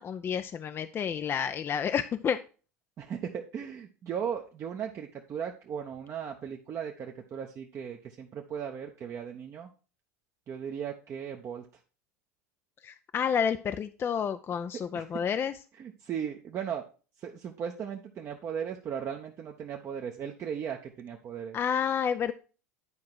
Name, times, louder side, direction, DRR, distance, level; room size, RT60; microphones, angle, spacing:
voice 1, 0.0-2.4 12.8-15.5 21.5-22.3, left 7 dB, 25° left, 10 dB, 0.4 m, -30 dB
voice 2, 3.0-9.7 10.5-11.7 14.9-15.0 15.8-16.9 17.2-21.6, right 8 dB, 35° right, 2 dB, 0.8 m, -37 dB
9.7 x 4.7 x 4.5 m, 0.35 s
figure-of-eight pair, 75°, 9 cm